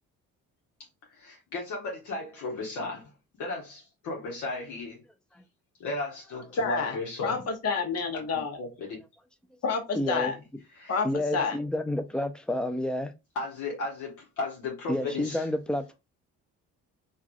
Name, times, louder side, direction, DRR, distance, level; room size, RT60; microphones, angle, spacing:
voice 1, 1.1-3.1 3.4-5.0 5.8-7.4 8.1-9.0 10.8-10.9 13.3-15.4, left 2 dB, 80° left, 0.9 m, -35 dB
voice 2, 6.6-8.6 9.6-10.4 10.9-11.1 11.3-11.6, left 4 dB, 55° left, 1.0 m, -29 dB
voice 3, 9.9-10.3 11.0-13.1 14.9-15.9, left 1 dB, 5° left, 0.4 m, -29 dB
3.3 x 2.4 x 2.4 m
cardioid pair, 90°, 30 cm